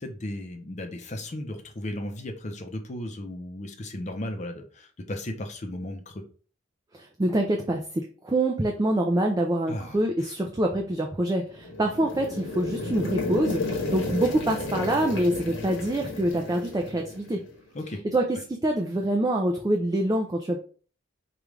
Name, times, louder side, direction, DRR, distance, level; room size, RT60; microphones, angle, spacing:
voice 1, 0.0-6.2 9.7-10.3 17.7-18.0, left 1 dB, 35° left, 4 dB, 0.5 m, -35 dB
voice 2, 6.9-17.5 18.0-20.6, right 1 dB, 20° right, 2 dB, 0.3 m, -26 dB
sound 1, 11.5-17.5, left 2 dB, 65° left, 1.0 m, -33 dB
4.9 x 2.3 x 3.1 m, 0.41 s
head